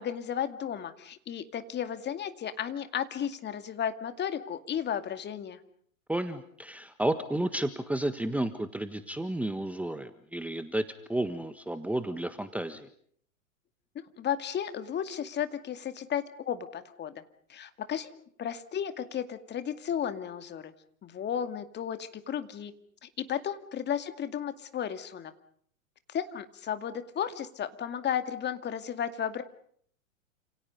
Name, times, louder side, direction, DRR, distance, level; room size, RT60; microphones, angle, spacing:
voice 1, 0.0-5.6 14.0-17.2 17.5-18.1 18.4-20.7 21.0-22.7 23.0-25.3 26.1-29.4, left 9 dB, 25° left, 10 dB, 2.3 m, -34 dB
voice 2, 6.1-12.9, right 1 dB, 5° right, 10 dB, 1.5 m, -32 dB
29.5 x 28.0 x 5.4 m, 0.62 s
hypercardioid pair, 100°, 41 cm